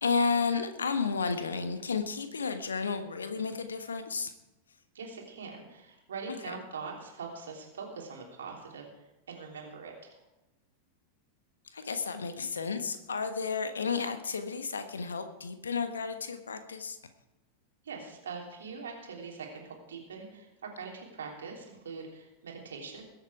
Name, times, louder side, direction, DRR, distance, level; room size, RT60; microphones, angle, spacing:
voice 1, 0.0-4.3 6.5-6.6 11.7-17.0, left 5 dB, 70° left, 9 dB, 1.3 m, -32 dB
voice 2, 4.9-8.9 9.3-10.2 17.8-23.0, right 5 dB, 65° right, 0 dB, 3.3 m, -42 dB
21.5 x 8.1 x 4.8 m, 0.96 s
figure-of-eight pair, 90°, 0 cm